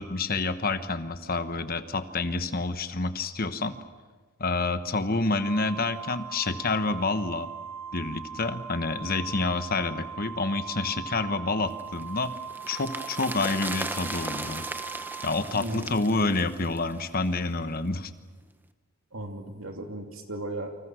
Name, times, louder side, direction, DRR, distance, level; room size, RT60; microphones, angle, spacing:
voice 1, 0.0-3.8 4.4-7.5 7.9-12.3 12.7-14.6 15.2-18.1, left 3 dB, 40° left, 11 dB, 1.1 m, -28 dB
Organ, 5.4-16.1, right 6 dB, 90° right, 1.2 m, -40 dB
sound 1, 11.8-17.2 17.5-17.6, right 2 dB, 10° right, 0.9 m, -37 dB
voice 2, 15.5-15.9 19.1-20.8, right 1 dB, 65° right, 4 dB, 2.9 m, -36 dB
29.0 x 26.0 x 6.4 m, 1.3 s
head